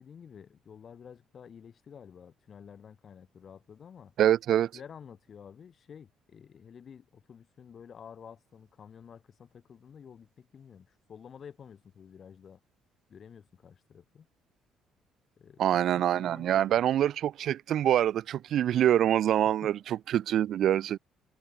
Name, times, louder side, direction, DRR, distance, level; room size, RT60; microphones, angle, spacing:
voice 1, 0.0-4.1 4.7-12.6 13.1-14.3 15.4-16.8 19.6-19.7, left 7 dB, 50° left, 6.0 m, -50 dB
voice 2, 4.2-4.7 15.6-21.0, right 11 dB, 65° right, 1.7 m, -25 dB
supercardioid pair, 75°, 0 cm